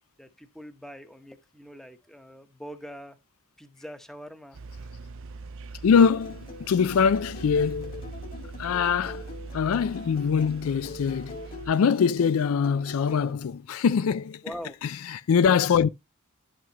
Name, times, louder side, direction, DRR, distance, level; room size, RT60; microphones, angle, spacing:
voice 1, 0.2-3.2 3.6-4.6 14.4-14.8, equal, ahead, 0.9 m, -43 dB
sound 1, 4.5-11.7, right 3 dB, 65° right, 0.5 m, -42 dB
voice 2, 5.8-8.0 8.6-9.2 9.5-11.4 11.7-14.4 14.8-15.9, left 6 dB, 80° left, 0.4 m, -23 dB
sound 2, 5.9-13.3, left 2 dB, 45° left, 1.9 m, -43 dB
10.5 x 5.9 x 2.9 m
head